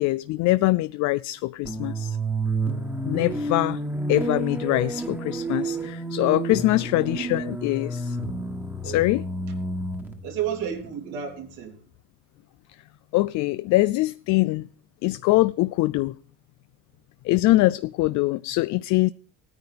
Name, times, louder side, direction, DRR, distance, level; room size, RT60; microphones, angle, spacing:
voice 1, 0.0-2.2 3.0-3.8 4.1-8.2 8.8-9.2 13.1-14.7 15.0-16.1 17.2-19.1, left 18 dB, 60° left, 0.5 m, -23 dB
sound 1, 1.6-11.5, right 2 dB, 5° right, 1.5 m, -30 dB
voice 2, 10.2-11.8, right 9 dB, 75° right, 3.6 m, -32 dB
16.0 x 9.7 x 5.1 m
cardioid pair, 120°, 33 cm